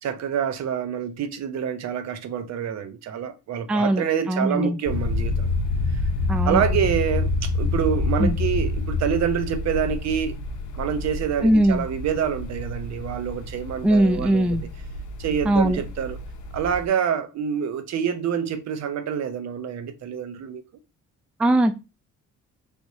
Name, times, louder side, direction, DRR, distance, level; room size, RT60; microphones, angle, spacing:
voice 1, 0.0-5.5 6.4-10.3 10.8-14.7 15.2-16.2 16.5-20.6, right 8 dB, 65° right, 0.7 m, -27 dB
voice 2, 3.7-4.8 6.3-6.6 8.2-8.3 11.4-11.8 13.8-14.6 15.4-15.8 21.4-21.7, right 1 dB, 5° right, 0.3 m, -20 dB
sound 1, 4.9-16.9, left 3 dB, 80° left, 0.6 m, -28 dB
3.3 x 2.9 x 2.7 m
cardioid pair, 90°, 30 cm